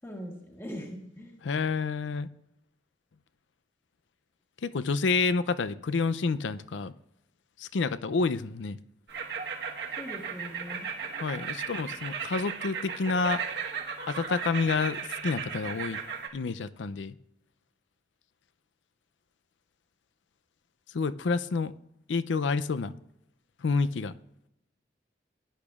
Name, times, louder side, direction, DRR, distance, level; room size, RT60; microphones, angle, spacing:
voice 1, 0.0-1.4 10.0-10.9, equal, 15° left, 1 dB, 1.4 m, -41 dB
voice 2, 1.4-2.3 4.6-6.9 7.6-8.8 11.2-13.4 14.1-16.0 16.3-17.2 20.9-21.7 22.1-22.9 23.6-24.1, left 4 dB, 90° left, 14 dB, 0.5 m, -29 dB
sound 1, 9.1-16.3, right 6 dB, 65° right, 1.3 m, -36 dB
17.0 x 10.5 x 2.4 m, 0.82 s
head